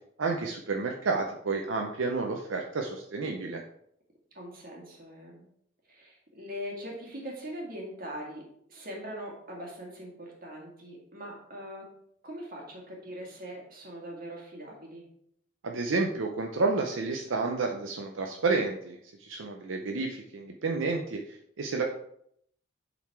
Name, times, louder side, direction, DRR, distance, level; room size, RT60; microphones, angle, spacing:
voice 1, 0.2-3.6 15.6-19.0 19.2-21.2 21.6-21.8, right 3 dB, 80° right, 2 dB, 0.6 m, -30 dB
voice 2, 4.3-5.5 5.9-8.4 8.7-11.9 12.2-15.0, equal, 45° right, -1 dB, 1.9 m, -41 dB
7.2 x 4.0 x 4.6 m, 0.71 s
head